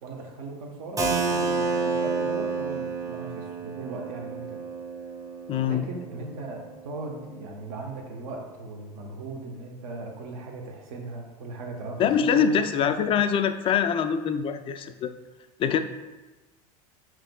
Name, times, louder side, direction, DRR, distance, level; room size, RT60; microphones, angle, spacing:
voice 1, 0.0-4.6 5.7-13.1, right 3 dB, 60° right, 1 dB, 1.0 m, -38 dB
Keyboard (musical), 1.0-6.5, right 4 dB, 15° right, 0.8 m, -30 dB
voice 2, 5.5-5.9 12.0-15.1 15.6-15.8, left 7 dB, 25° left, 9 dB, 0.3 m, -24 dB
7.3 x 3.0 x 2.2 m, 1.1 s
hypercardioid pair, 85°, 20 cm